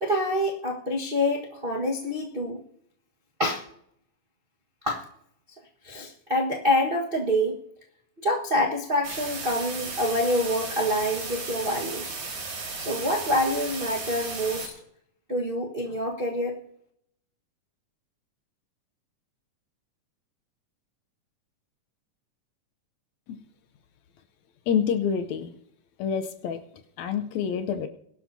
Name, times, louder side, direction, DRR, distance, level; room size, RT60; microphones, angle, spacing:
voice 1, 0.0-2.6 3.4-3.6 4.8-5.0 5.8-7.6 8.2-12.2 12.8-14.7 15.3-16.5, left 1 dB, 60° right, -3 dB, 0.5 m, -26 dB
sound 1, 9.0-14.7, right 4 dB, 85° right, 5.9 m, -35 dB
voice 2, 24.7-25.5 26.0-26.6 27.0-27.9, left 7 dB, 70° left, 9 dB, 1.9 m, -27 dB
22.0 x 12.0 x 2.8 m, 0.72 s
omnidirectional pair, 3.8 m